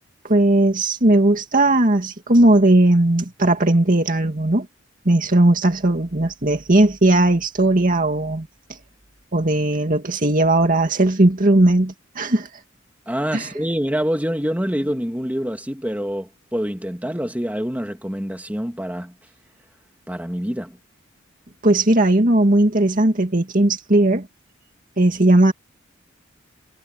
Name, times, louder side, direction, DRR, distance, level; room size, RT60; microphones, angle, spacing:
voice 1, 0.2-4.7 5.1-8.5 9.3-12.5 13.3-13.4 21.6-24.3 25.0-25.5, right 1 dB, 45° right, 2.1 m, -17 dB
voice 2, 13.1-19.1 20.1-20.8, equal, 10° right, 2.8 m, -26 dB
head